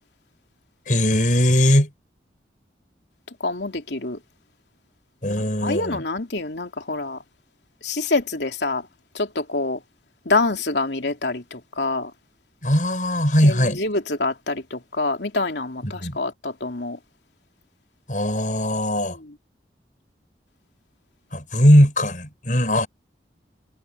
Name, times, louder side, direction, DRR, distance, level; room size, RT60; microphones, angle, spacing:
voice 1, 0.9-1.9 5.2-6.0 12.6-13.8 16.0-16.2 18.1-19.2 21.3-22.9, equal, 45° left, 7.9 m, -19 dB
voice 2, 3.4-4.2 5.3-7.2 7.8-8.9 9.1-9.8 10.2-12.1 13.4-17.0, left 3 dB, 80° left, 3.1 m, -26 dB
head